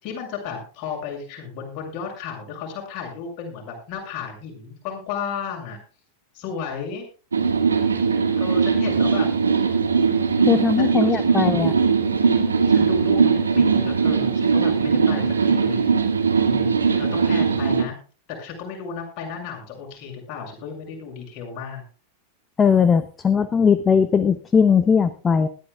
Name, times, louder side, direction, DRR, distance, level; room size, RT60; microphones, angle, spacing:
voice 1, 0.0-5.8 6.3-7.1 8.4-9.3 10.8-11.7 12.7-15.8 16.4-18.0 18.4-21.8, left 6 dB, 40° left, 1 dB, 7.2 m, -34 dB
sound 1, 7.3-17.8, right 5 dB, 75° right, 2.4 m, -20 dB
voice 2, 10.4-11.7 22.6-25.5, left 6 dB, 20° left, 13 dB, 0.9 m, -19 dB
20.0 x 13.0 x 2.5 m, 0.37 s
figure-of-eight pair, 90°, 0 cm